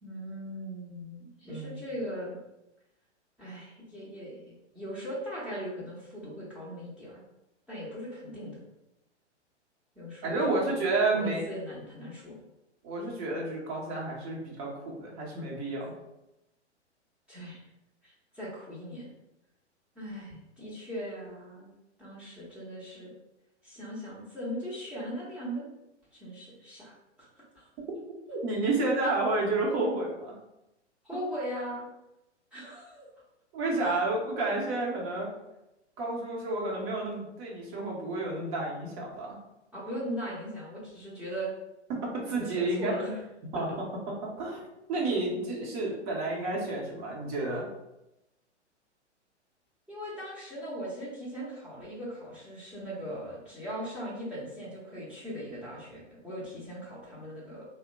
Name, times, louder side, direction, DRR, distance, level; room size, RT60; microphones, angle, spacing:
voice 1, 0.0-2.4 3.4-7.2 7.7-8.6 10.0-10.9 11.1-12.4 17.3-17.6 18.0-19.1 19.9-21.7 22.0-23.1 23.6-25.7 26.1-26.9 27.2-27.3 27.5-27.7 31.0-31.9 32.5-33.1 33.8-34.0 39.7-41.5 42.3-43.1 49.9-57.6, equal, 5° right, -9 dB, 0.8 m, -39 dB
voice 2, 1.4-1.8 10.2-11.5 12.8-15.9 28.3-30.3 33.5-35.3 36.0-39.4 41.9-42.9 43.5-43.7 44.4-44.6 44.9-47.7, right 2 dB, 30° right, -3 dB, 0.9 m, -30 dB
2.8 x 2.1 x 3.7 m, 0.91 s
figure-of-eight pair, 110°, 35 cm